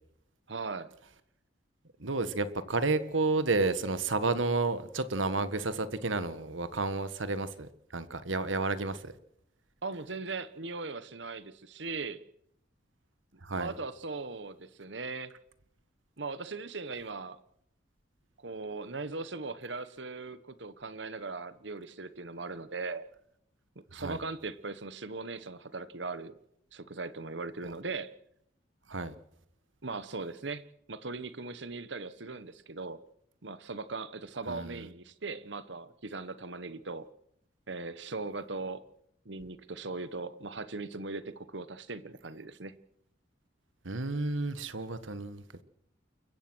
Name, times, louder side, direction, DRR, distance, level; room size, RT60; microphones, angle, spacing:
voice 1, 0.5-0.9 9.8-12.2 13.5-15.3 16.2-17.4 18.4-23.0 23.9-26.4 26.7-28.1 29.8-33.0 33.4-37.0 37.7-38.8 39.2-42.7, right 3 dB, 65° right, 14 dB, 1.2 m, -39 dB
voice 2, 2.0-9.1 13.4-13.7 23.9-24.2 28.9-29.1 34.5-34.9 43.8-45.4, right 3 dB, 85° right, 13 dB, 1.6 m, -31 dB
29.0 x 15.5 x 6.3 m, 0.75 s
head